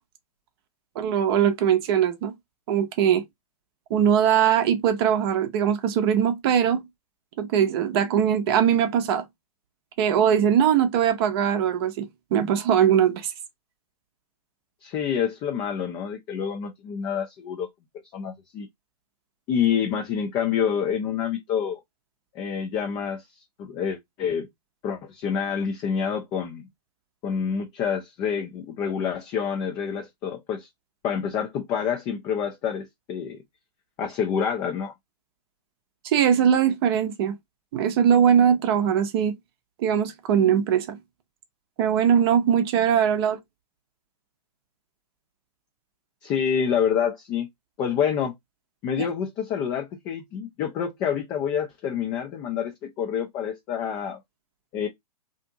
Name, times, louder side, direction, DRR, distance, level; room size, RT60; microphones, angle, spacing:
voice 1, 1.0-2.3 2.7-3.2 3.9-6.9 7.4-9.2 10.0-13.3 36.0-37.3 37.7-39.3 39.8-41.0 41.8-43.4 49.0-49.1, right 8 dB, 40° right, 0.6 m, -21 dB
voice 2, 14.8-17.7 18.1-18.7 19.5-21.8 22.4-23.2 23.6-24.5 24.8-26.7 27.2-30.7 31.0-33.4 34.0-34.9 46.2-47.5 47.8-48.3 48.8-54.2 54.7-54.9, left 7 dB, 20° left, 0.3 m, -27 dB
2.5 x 2.4 x 2.6 m
figure-of-eight pair, 115°, 20 cm